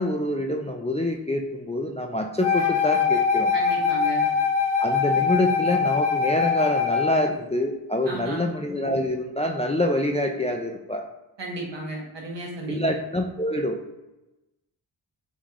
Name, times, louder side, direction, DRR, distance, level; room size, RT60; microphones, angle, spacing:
voice 1, 0.0-3.5 4.8-11.0 12.7-13.8, left 1 dB, 15° left, 2 dB, 0.3 m, -26 dB
Wind instrument woodwind instrument, 2.4-7.3, left 6 dB, 60° left, 0.7 m, -23 dB
voice 2, 3.5-4.3 8.1-8.5 11.4-12.9, right 1 dB, 70° right, -2 dB, 1.2 m, -33 dB
3.8 x 3.1 x 3.5 m, 0.98 s
wide cardioid pair, 75°, 46 cm